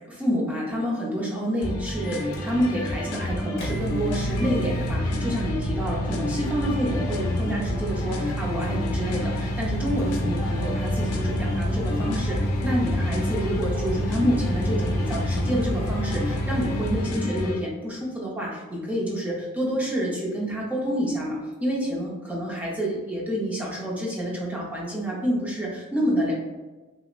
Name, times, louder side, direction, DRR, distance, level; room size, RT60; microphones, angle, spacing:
voice 1, 0.1-26.3, equal, 5° right, -5 dB, 0.6 m, -28 dB
sound 1, 1.6-17.6, left 1 dB, 90° left, 0.5 m, -29 dB
Microwave oven, 2.0-17.1, equal, 50° left, 0.7 m, -31 dB
3.0 x 2.7 x 2.4 m, 1.2 s
head